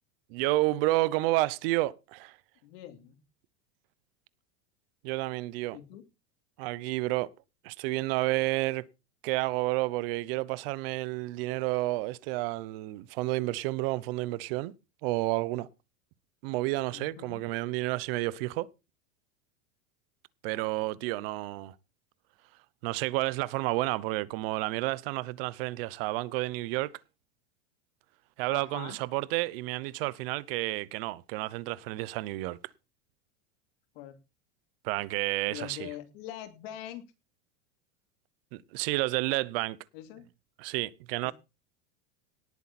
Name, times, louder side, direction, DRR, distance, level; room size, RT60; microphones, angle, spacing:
voice 1, 0.3-2.4 5.0-5.8 6.6-7.3 7.6-8.8 9.2-14.7 15.0-15.7 16.4-18.7 20.4-21.7 22.8-26.9 28.4-32.6 34.8-35.9 38.5-39.8 40.6-41.3, right 19 dB, 60° right, 0.9 m, -30 dB
voice 2, 2.6-3.2 5.7-6.0 16.9-17.4 28.5-29.0 33.9-34.2 35.5-37.0 39.9-40.2 41.2-41.3, left 12 dB, 65° left, 2.9 m, -43 dB
18.0 x 8.3 x 4.3 m
supercardioid pair, 145°, 33 cm